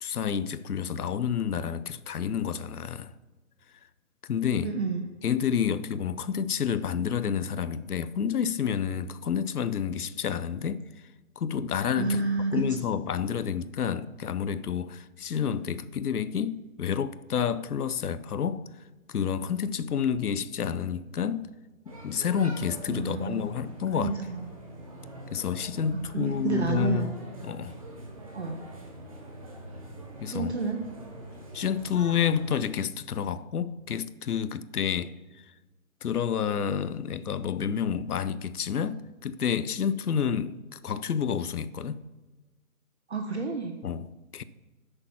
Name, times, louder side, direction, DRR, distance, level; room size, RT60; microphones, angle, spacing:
voice 1, 0.0-3.1 4.2-4.8 5.2-10.8 11.4-12.2 12.5-18.6 19.1-21.5 22.0-24.2 25.3-27.1 27.4-27.7 30.2-30.5 31.5-35.1 36.0-42.0 43.8-44.4, left 8 dB, 85° left, 0.7 m, -29 dB
voice 2, 4.6-5.0 11.9-12.6 22.9-23.3 24.0-24.5 25.9-27.1 28.3-28.6 30.3-30.8 43.1-43.7, right 4 dB, 50° right, 0.8 m, -30 dB
sound 1, 21.9-32.6, right 1 dB, 25° right, 1.0 m, -44 dB
8.7 x 6.7 x 5.6 m
hypercardioid pair, 170°, 44 cm